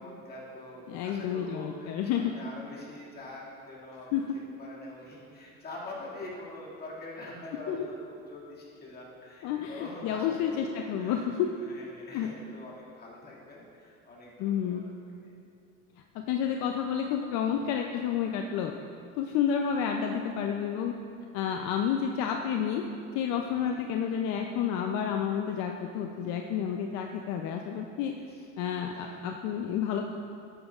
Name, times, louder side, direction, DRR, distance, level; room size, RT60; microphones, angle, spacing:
voice 1, 0.0-4.1 4.6-14.8 23.7-23.9 26.7-26.8 28.1-28.5 28.9-29.2, left 2 dB, 35° left, -5 dB, 2.2 m, -45 dB
voice 2, 0.9-2.3 4.1-4.3 7.7-7.8 9.4-11.5 12.1-12.3 14.4-14.8 16.1-18.7 19.2-20.9 21.3-22.8 23.1-28.1 28.6-30.0, left 8 dB, 70° left, 3 dB, 0.6 m, -30 dB
11.5 x 8.9 x 2.4 m, 2.6 s
cardioid pair, 125°, 29 cm